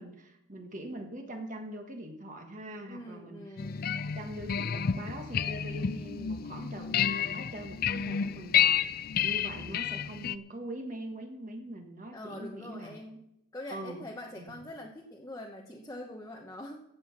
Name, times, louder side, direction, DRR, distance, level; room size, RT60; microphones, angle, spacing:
voice 1, 0.0-3.4 4.0-12.9 13.7-14.0 14.4-14.6, right 1 dB, 40° right, 3 dB, 1.4 m, -42 dB
voice 2, 2.9-3.9 12.1-13.2 13.5-16.8, left 1 dB, 15° left, -1 dB, 0.9 m, -44 dB
sound 1, 3.6-10.4, left 8 dB, 45° left, 0.4 m, -30 dB
15.5 x 7.8 x 5.9 m, 0.84 s
head